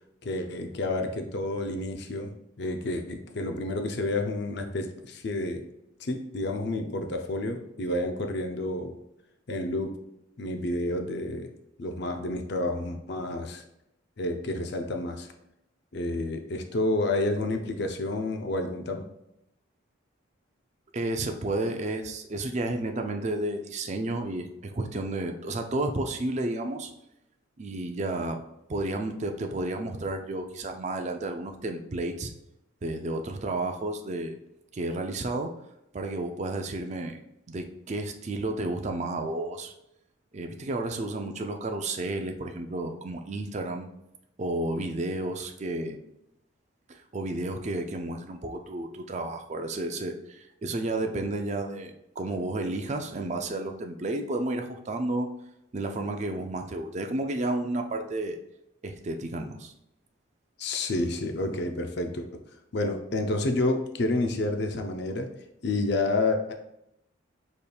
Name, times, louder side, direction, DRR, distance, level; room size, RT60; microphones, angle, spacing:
voice 1, 0.2-5.6 6.0-9.0 9.5-10.0 10.4-11.5 11.8-13.6 14.2-15.3 15.9-19.0 60.6-62.4 62.7-65.3 65.6-66.5, left 2 dB, 55° left, 5 dB, 0.5 m, -29 dB
voice 2, 20.9-26.9 27.6-28.4 28.7-32.3 32.8-34.3 34.7-35.5 35.9-37.2 37.5-39.7 40.3-43.9 44.4-46.0 46.9-55.3 55.7-58.4 58.8-59.7, right 2 dB, 35° right, 5 dB, 0.4 m, -32 dB
5.1 x 4.2 x 2.3 m, 0.84 s
head